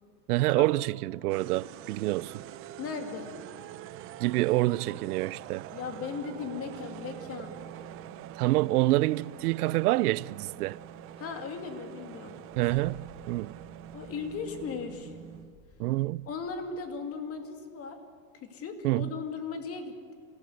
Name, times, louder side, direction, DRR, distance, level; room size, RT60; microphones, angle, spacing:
voice 1, 0.3-2.3 4.2-5.7 8.4-10.8 12.6-13.5 15.8-16.3 18.8-19.1, right 18 dB, 65° right, 0.6 m, -27 dB
sound 1, 1.3-15.5, right 11 dB, 25° right, 0.7 m, -45 dB
voice 2, 2.8-3.3 5.7-7.6 11.2-12.4 13.9-15.1 16.3-18.0 18.4-20.1, left 5 dB, 30° left, 2.5 m, -37 dB
sound 2, 12.1-17.3, equal, 5° left, 5.2 m, -56 dB
25.5 x 17.5 x 8.0 m
supercardioid pair, 140°, 50 cm